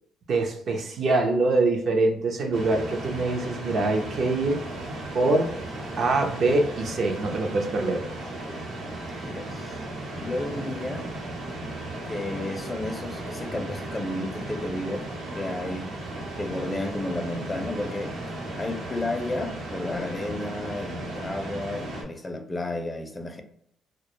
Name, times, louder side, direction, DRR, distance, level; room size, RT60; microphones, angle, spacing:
voice 1, 0.3-4.6 5.1-5.5 6.0-8.0, right 2 dB, 60° right, 0.5 m, -24 dB
sound 1, 2.5-22.0, right 2 dB, 80° right, 0.8 m, -36 dB
voice 2, 9.1-9.8 10.2-11.1 12.1-15.1 15.3-15.9 16.4-18.1 18.5-23.4, left 2 dB, 20° left, 0.4 m, -32 dB
2.1 x 2.0 x 2.9 m
cardioid pair, 90°, 0 cm